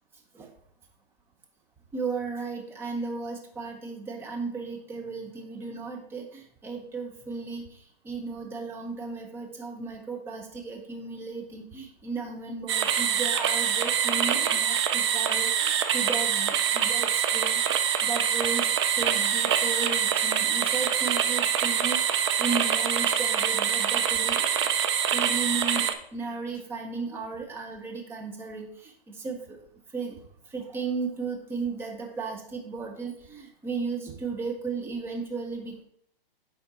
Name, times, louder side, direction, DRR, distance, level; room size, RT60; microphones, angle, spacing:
voice 1, 1.9-7.8 8.0-18.7 18.9-22.0 22.4-24.6 25.1-29.6 29.9-30.2 30.5-35.8, right 4 dB, 10° right, 1 dB, 0.8 m, -35 dB
sound 1, 12.7-25.9, right 8 dB, 30° right, 0.4 m, -25 dB
9.4 x 3.6 x 4.1 m, 0.67 s
hypercardioid pair, 135°, 30 cm